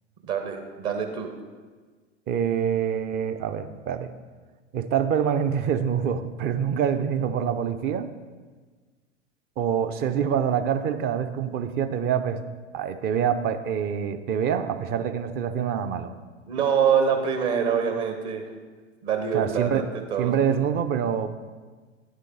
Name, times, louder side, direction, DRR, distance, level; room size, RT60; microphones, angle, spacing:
voice 1, 0.3-1.3 16.5-18.4 19.0-19.8 20.1-20.3, right 7 dB, 45° right, 5 dB, 1.1 m, -25 dB
voice 2, 2.3-4.1 4.7-8.1 9.6-12.4 12.7-16.1 19.3-19.8 20.2-21.3, right 8 dB, 30° right, 10 dB, 0.5 m, -25 dB
10.0 x 8.1 x 3.8 m, 1.4 s
figure-of-eight pair, 85°, 36 cm